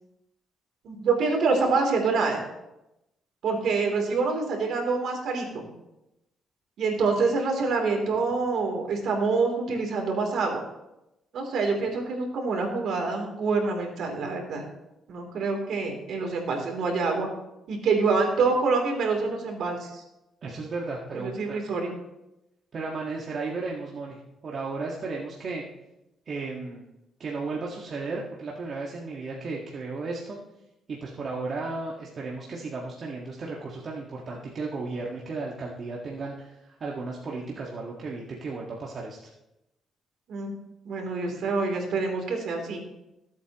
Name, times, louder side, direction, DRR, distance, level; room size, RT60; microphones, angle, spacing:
voice 1, 0.8-2.4 3.4-5.6 6.8-10.6 11.3-14.6 15.1-17.3 17.7-20.0 21.1-21.9 40.3-40.5 40.8-42.8, right 4 dB, 70° right, 2 dB, 3.4 m, -26 dB
voice 2, 20.4-21.6 22.7-24.2 24.4-25.6 26.3-26.8 27.2-30.4 30.9-39.2, right 3 dB, 50° right, -3 dB, 1.8 m, -34 dB
21.5 x 8.4 x 3.1 m, 0.92 s
cardioid pair, 90°, 0 cm